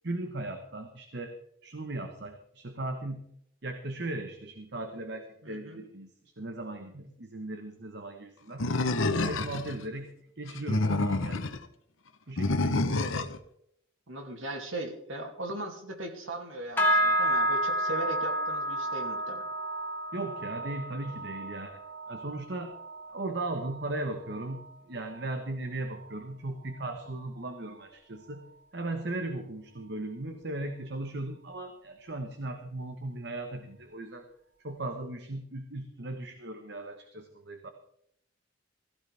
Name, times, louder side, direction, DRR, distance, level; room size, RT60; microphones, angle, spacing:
voice 1, 0.0-1.3 1.6-3.2 3.6-6.1 6.4-8.7 9.1-11.5 12.3-13.1 20.1-21.8 22.1-22.7 23.1-28.4 28.7-34.3 34.6-37.7, right 2 dB, 60° right, 6 dB, 1.2 m, -37 dB
voice 2, 5.4-5.8 14.1-19.5, right 1 dB, 85° right, 3 dB, 2.7 m, -38 dB
Animal, 8.6-9.8 10.5-11.6 12.4-13.4, left 2 dB, 85° left, 1.0 m, -28 dB
sound 1, 16.8-26.3 26.6-27.1 27.5-27.8 28.3-28.4, equal, 10° left, 1.9 m, -32 dB
16.5 x 14.5 x 3.5 m, 0.73 s
head